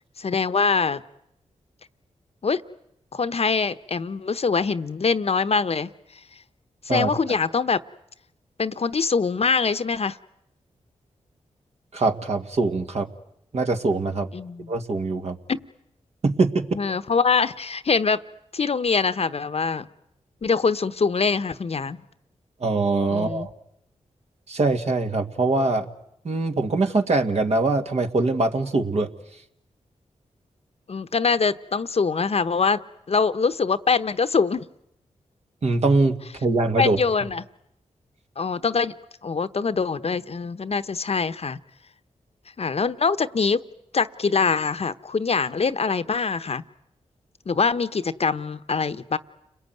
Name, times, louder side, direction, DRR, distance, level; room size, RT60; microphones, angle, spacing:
voice 1, 0.2-1.0 2.4-2.6 3.1-5.9 6.9-7.8 8.6-10.2 14.3-14.7 15.5-15.6 16.7-18.2 18.5-19.9 20.4-22.0 23.1-23.5 30.9-32.8 33.1-34.6 36.8-37.4 38.4-38.9 39.2-41.6 42.6-43.6 43.9-46.6 47.5-49.2, left 5 dB, 50° left, 12 dB, 1.0 m, -23 dB
voice 2, 11.9-13.1 13.5-14.3 14.7-15.4 16.2-16.7 22.6-23.5 24.5-25.9 26.2-29.1 35.6-37.0, right 3 dB, 60° right, 4 dB, 2.1 m, -23 dB
30.0 x 21.0 x 9.4 m, 0.79 s
cardioid pair, 50°, 13 cm